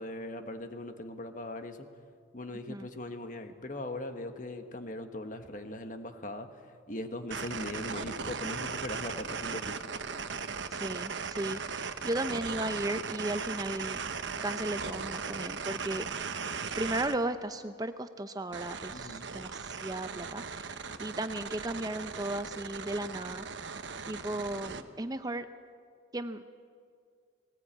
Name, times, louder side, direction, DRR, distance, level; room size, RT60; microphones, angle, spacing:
voice 1, 0.0-1.8 2.3-6.5 6.9-9.8 18.9-19.3, left 1 dB, 40° left, 7 dB, 1.3 m, -40 dB
sound 1, 7.3-17.2 18.5-24.8, right 5 dB, 70° right, 1.0 m, -38 dB
voice 2, 10.7-14.0 14.4-16.1 16.8-23.5 24.1-25.5 26.1-26.4, right 1 dB, 20° right, 10 dB, 0.5 m, -35 dB
19.5 x 18.0 x 8.8 m, 2.1 s
head